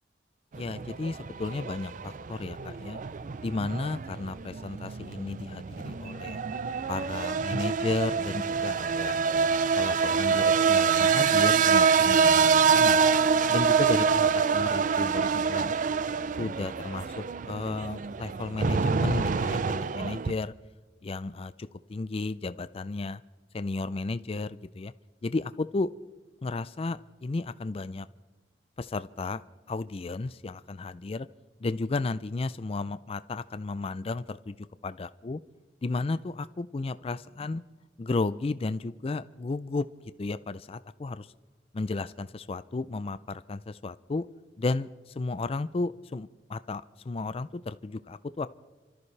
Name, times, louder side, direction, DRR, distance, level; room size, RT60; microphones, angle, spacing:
voice 1, 0.5-3.0 3.4-6.4 6.9-9.2 9.8-13.0 13.5-15.7 16.4-20.5 21.0-23.2 23.5-24.9 25.2-25.9 26.4-28.1 28.8-29.4 29.7-31.3 31.6-34.6 34.8-35.4 35.8-37.6 38.0-39.9 40.2-41.3 41.7-44.2 44.6-44.9 45.2-48.5, left 3 dB, 35° left, 14 dB, 0.4 m, -33 dB
sound 1, 0.5-20.3, right 6 dB, 45° right, 0.4 m, -26 dB
30.0 x 13.5 x 3.3 m, 1.2 s
head